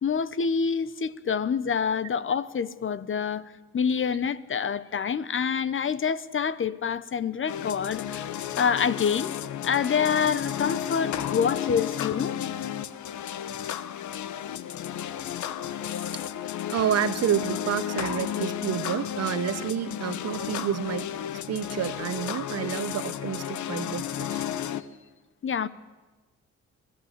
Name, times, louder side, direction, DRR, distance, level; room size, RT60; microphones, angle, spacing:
voice 1, 0.0-8.3 8.6-9.3 9.6-12.4 25.4-25.7, left 6 dB, 40° left, 1.0 m, -27 dB
sound 1, 7.5-24.8, left 10 dB, 75° left, 1.1 m, -33 dB
voice 2, 16.1-21.2 21.5-24.4, right 10 dB, 55° right, 1.0 m, -29 dB
25.5 x 17.0 x 8.3 m
cardioid pair, 90°, 30 cm